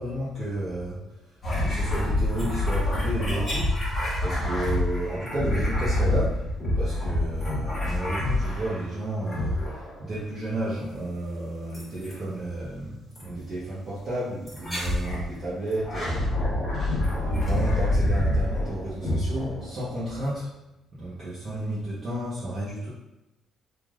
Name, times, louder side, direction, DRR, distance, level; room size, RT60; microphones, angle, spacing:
voice 1, 0.0-6.4 6.7-16.3 16.8-20.5 20.9-22.9, right 1 dB, 35° right, -10 dB, 0.6 m, -32 dB
sound 1, 1.4-8.9 9.3-10.0 11.7-12.2 13.2-13.3 14.5-15.3 15.7-20.1, left 1 dB, 15° left, 1.0 m, -27 dB
3.2 x 2.4 x 2.3 m, 0.95 s
cardioid pair, 180°, 0 cm